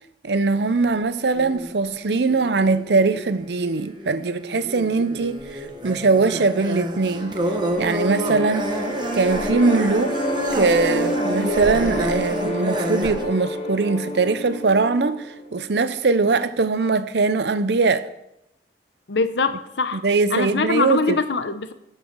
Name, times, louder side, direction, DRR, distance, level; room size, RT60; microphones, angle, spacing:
voice 1, 0.2-7.4 7.8-8.7 9.1-10.2 10.5-18.1 19.9-21.2, right 3 dB, 65° right, 0.6 m, -21 dB
Carnatic varnam by Badrinarayanan in Mohanam raaga, 0.5-1.0 1.3-13.2, equal, 25° right, 1.1 m, -29 dB
sound 1, 6.8-15.8, equal, 35° left, 2.5 m, -29 dB
voice 2, 19.1-20.0 20.3-21.7, left 4 dB, 75° left, 0.8 m, -23 dB
7.8 x 7.6 x 6.7 m
head